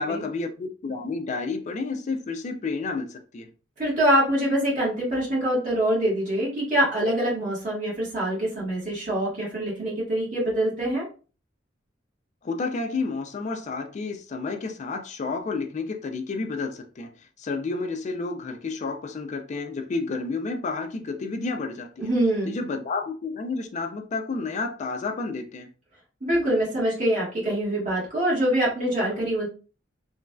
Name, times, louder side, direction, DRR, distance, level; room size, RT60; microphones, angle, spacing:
voice 1, 0.0-3.5 12.4-22.1 22.5-25.7, left 3 dB, 40° left, 0.3 m, -31 dB
voice 2, 3.8-11.1 22.0-22.6 26.2-29.5, right 1 dB, 40° right, 1.5 m, -24 dB
3.0 x 2.5 x 2.2 m
head